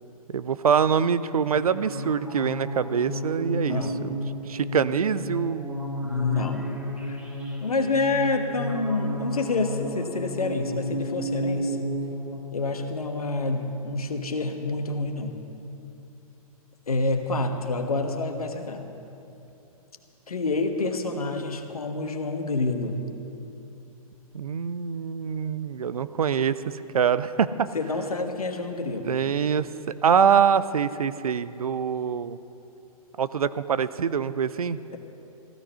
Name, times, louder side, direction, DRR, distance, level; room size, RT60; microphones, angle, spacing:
voice 1, 0.3-4.2 4.5-5.8 24.3-27.7 29.1-29.7 30.0-32.4 33.2-34.8, right 7 dB, 75° right, 15 dB, 0.6 m, -24 dB
sound 1, 1.5-12.4, equal, 5° right, 2.3 m, -32 dB
voice 2, 3.7-4.1 6.0-7.2 7.6-11.9 12.5-15.3 16.9-18.8 20.3-23.1 27.7-29.2, left 3 dB, 75° left, 5 dB, 1.4 m, -28 dB
15.0 x 12.0 x 5.6 m, 2.9 s
figure-of-eight pair, 120°, 19 cm